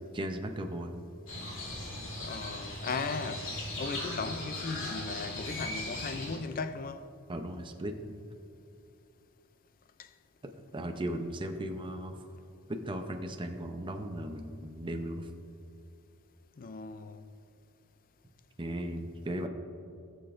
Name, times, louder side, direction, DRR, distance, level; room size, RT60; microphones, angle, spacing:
voice 1, 0.1-1.0 7.3-8.2 10.7-12.1 12.7-15.3 18.6-19.5, right 1 dB, 20° right, 0.6 m, -36 dB
Crow, 1.3-6.4, left 1 dB, 60° left, 1.8 m, -38 dB
voice 2, 2.2-3.5 3.8-7.1 10.0-10.1 16.6-17.2, left 4 dB, 40° left, 0.4 m, -37 dB
18.0 x 6.9 x 2.6 m
head